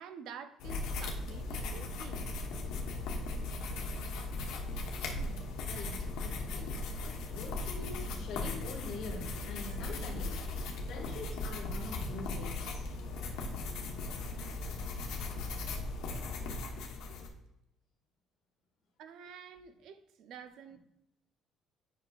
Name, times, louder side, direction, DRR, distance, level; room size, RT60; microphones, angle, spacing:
voice 1, 0.0-2.3 19.0-20.8, right 7 dB, 60° right, 10 dB, 0.5 m, -49 dB
sound 1, 0.6-17.3, left 2 dB, 80° left, 1.0 m, -38 dB
voice 2, 5.0-10.6 10.9-12.8 15.1-15.2 16.4-17.3, left 3 dB, 50° left, -2 dB, 1.7 m, -46 dB
9.5 x 5.5 x 2.4 m, 0.84 s
cardioid pair, 180°, 0 cm